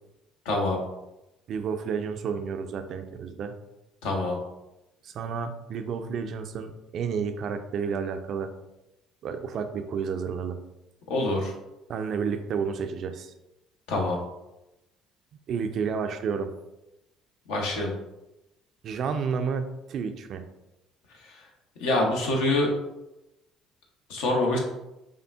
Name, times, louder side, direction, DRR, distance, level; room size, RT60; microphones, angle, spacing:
voice 1, 0.4-0.8 4.0-4.4 11.1-11.5 13.9-14.2 17.5-17.9 21.1-21.5 21.8-22.7 24.1-24.6, left 2 dB, 70° left, 1 dB, 0.7 m, -25 dB
voice 2, 1.5-3.5 5.0-8.5 9.2-10.6 11.9-13.3 15.5-16.5 18.8-20.4, right 6 dB, 55° right, 8 dB, 0.3 m, -31 dB
5.0 x 2.4 x 2.3 m, 0.94 s
hypercardioid pair, 55°, 0 cm